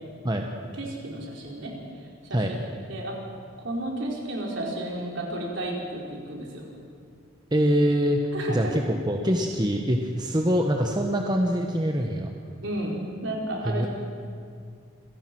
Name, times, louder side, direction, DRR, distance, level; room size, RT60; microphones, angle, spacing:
voice 1, 0.6-1.8 2.2-2.6 2.9-3.2 3.6-6.6 8.3-8.8 12.6-13.9, right 1 dB, 65° right, -1 dB, 4.6 m, -32 dB
voice 2, 7.5-12.3 13.6-13.9, equal, 20° right, 2 dB, 1.2 m, -24 dB
27.5 x 17.5 x 6.2 m, 2.2 s
head